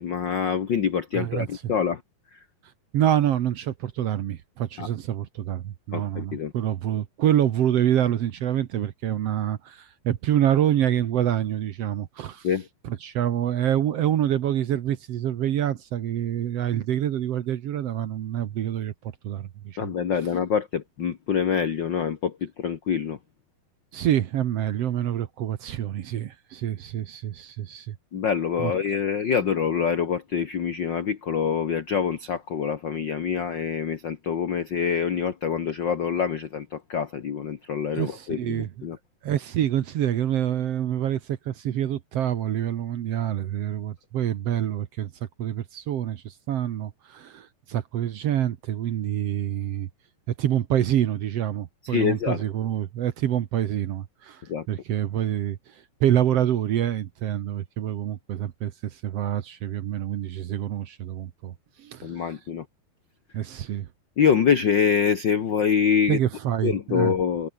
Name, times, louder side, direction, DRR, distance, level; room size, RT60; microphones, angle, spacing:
voice 1, 0.0-2.0 2.3-2.4 4.8-4.9 5.9-6.5 12.4-12.7 19.8-23.2 28.1-39.0 51.8-52.4 54.5-54.7 62.0-62.6 64.2-66.2 66.6-67.5, left 7 dB, 65° left, 1.1 m, -25 dB
voice 2, 1.1-1.5 2.9-12.5 12.8-18.9 19.2-19.9 23.9-28.0 28.6-28.7 37.9-38.7 39.2-45.1 45.4-49.9 50.4-54.4 54.7-62.2 63.3-63.9 66.1-67.1, right 11 dB, 65° right, 1.6 m, -26 dB
omnidirectional pair, 4.1 m